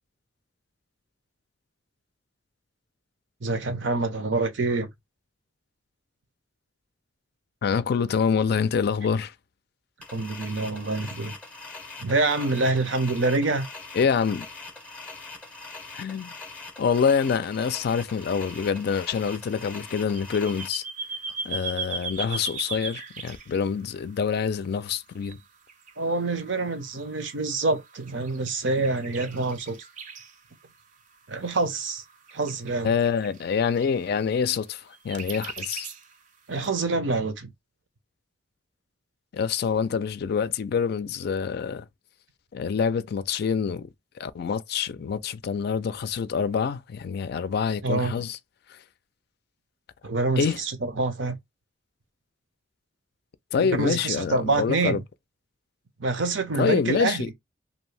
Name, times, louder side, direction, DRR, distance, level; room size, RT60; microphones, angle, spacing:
voice 1, 3.4-4.9 10.1-11.3 12.0-13.7 26.0-29.8 31.3-32.0 32.3-32.9 36.5-37.5 47.8-48.1 50.0-51.4 53.6-55.0 56.0-57.3, right 3 dB, 75° right, 0.7 m, -26 dB
voice 2, 7.6-9.3 13.9-14.5 15.9-16.3 16.8-20.8 21.4-25.4 32.8-35.9 39.3-41.9 42.5-43.9 44.2-48.4 48.7-48.8 50.4-50.6 53.5-55.0 56.6-57.3, left 6 dB, 55° left, 0.3 m, -26 dB
sound 1, 10.0-20.7, left 3 dB, 5° left, 0.6 m, -42 dB
sound 2, 18.5-24.4 25.2-25.4 25.7-30.4 31.4-33.9 34.9-36.2 36.6-36.7, right 4 dB, 40° right, 0.5 m, -38 dB
2.7 x 2.6 x 3.2 m
head